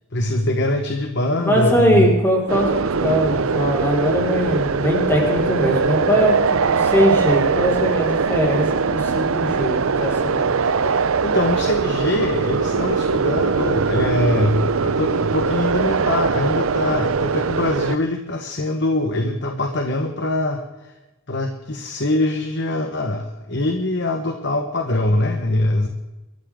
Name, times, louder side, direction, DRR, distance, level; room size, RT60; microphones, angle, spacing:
voice 1, 0.1-2.1 10.6-11.0 11.2-20.6 21.3-25.9, left 1 dB, 60° left, 5 dB, 1.4 m, -23 dB
voice 2, 1.4-2.7 3.0-6.4 6.6-10.4 12.7-12.8, equal, 10° left, -2 dB, 5.4 m, -20 dB
sound 1, 2.5-18.0, right 5 dB, 85° right, 0.7 m, -21 dB
24.0 x 14.0 x 3.9 m, 1.0 s
head